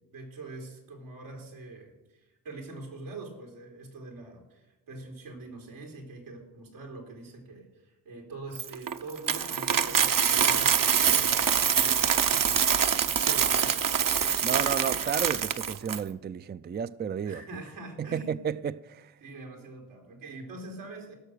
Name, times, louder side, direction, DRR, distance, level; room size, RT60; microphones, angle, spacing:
voice 1, 0.1-12.9 13.2-14.1 17.2-18.4 19.2-21.1, right 2 dB, 85° right, 3.5 m, -44 dB
Coin (dropping), 8.5-16.0, right 7 dB, 45° right, 0.8 m, -25 dB
voice 2, 14.4-17.4 18.0-19.1, right 7 dB, 25° right, 0.4 m, -32 dB
17.0 x 6.5 x 6.5 m
supercardioid pair, 40°, 46 cm